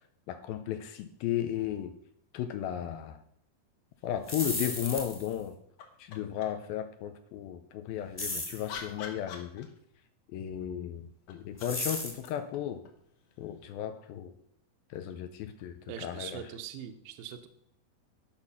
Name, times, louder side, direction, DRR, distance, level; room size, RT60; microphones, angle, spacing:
voice 1, 0.3-1.9 2.3-3.2 4.0-5.6 6.0-9.7 10.3-12.8 13.4-14.4 14.9-16.4, left 10 dB, 80° left, 8 dB, 2.2 m, -35 dB
sound 1, 4.1-5.4 8.2-8.7 11.6-12.3, left 1 dB, 20° left, 1.1 m, -35 dB
sound 2, 5.8-6.7 8.2-10.1 11.1-13.7 15.7-15.8, left 7 dB, 65° left, 2.2 m, -47 dB
voice 2, 15.9-17.5, right 9 dB, 75° right, 6 dB, 2.4 m, -42 dB
10.5 x 6.2 x 5.6 m, 0.72 s
omnidirectional pair, 4.7 m